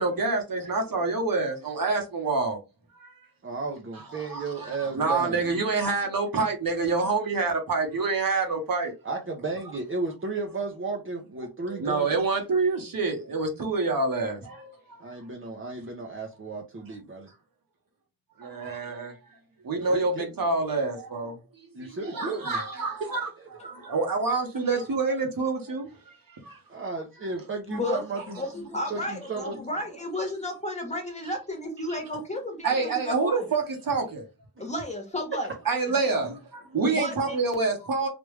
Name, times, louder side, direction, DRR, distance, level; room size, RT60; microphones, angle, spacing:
voice 1, 0.0-2.6 3.0-3.1 4.3-8.9 11.7-15.0 18.4-19.1 19.6-21.4 21.8-23.3 23.6-25.9 26.4-26.6 27.9-28.0 31.9-32.0 32.6-34.2 35.7-38.1, right 3 dB, 60° right, 1.2 m, -27 dB
voice 2, 3.4-5.4 9.0-12.1 15.0-17.3 19.8-20.3 21.7-22.6 23.0-23.5 26.7-28.4 28.9-29.6, right 3 dB, 35° right, 0.7 m, -34 dB
voice 3, 27.7-28.0 28.4-33.5 34.6-35.5 35.9-36.1 36.9-37.4, left 1 dB, 20° left, 1.2 m, -33 dB
3.3 x 2.5 x 3.2 m
wide cardioid pair, 80°, 38 cm